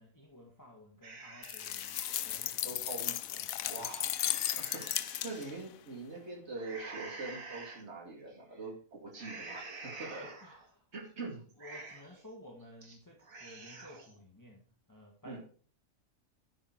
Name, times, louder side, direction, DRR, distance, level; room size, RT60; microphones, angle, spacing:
voice 1, 0.0-2.8 3.4-3.6 10.2-10.9 11.6-15.4, left 1 dB, 15° left, -1 dB, 1.8 m, -54 dB
sound 1, 1.0-2.6 3.1-3.2 3.7-5.5 6.5-7.8 8.3-8.6 9.1-10.7 11.0-11.1 11.5-12.2 12.6-13.0 13.2-14.1, right 3 dB, 80° right, 2.4 m, -48 dB
sound 2, 1.4-5.6, left 12 dB, 85° left, 1.1 m, -35 dB
voice 2, 2.6-3.2 3.7-4.1 4.5-10.3 10.9-11.4 15.2-15.4, right 3 dB, 55° right, -1 dB, 2.8 m, -43 dB
11.5 x 6.7 x 4.6 m, 0.43 s
omnidirectional pair, 1.4 m